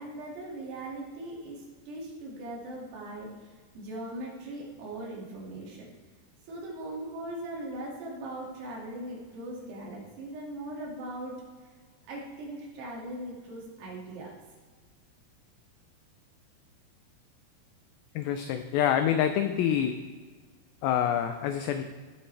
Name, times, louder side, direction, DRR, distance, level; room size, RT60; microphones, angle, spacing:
voice 1, 0.0-5.9 6.4-11.7 12.1-14.3, right 1 dB, 80° right, -3 dB, 4.4 m, -40 dB
voice 2, 18.2-20.0 20.8-21.8, left 9 dB, 85° left, 8 dB, 2.1 m, -26 dB
16.5 x 7.9 x 3.3 m, 1.5 s
omnidirectional pair, 4.8 m